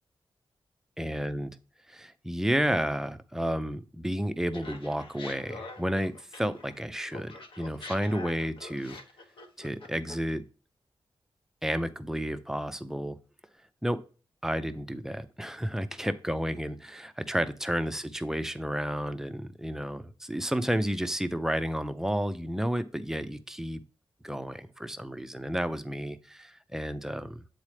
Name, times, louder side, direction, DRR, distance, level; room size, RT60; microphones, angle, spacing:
voice 1, 1.0-1.6 1.9-9.0 9.6-10.4 11.6-13.2 13.8-14.0 14.4-23.8 24.2-27.4, equal, 5° right, 10 dB, 0.5 m, -31 dB
Laughter, 4.5-6.8 7.1-10.3, left 3 dB, 75° left, 1.2 m, -44 dB
8.5 x 4.1 x 3.2 m, 0.37 s
wide cardioid pair, 165°, 9 cm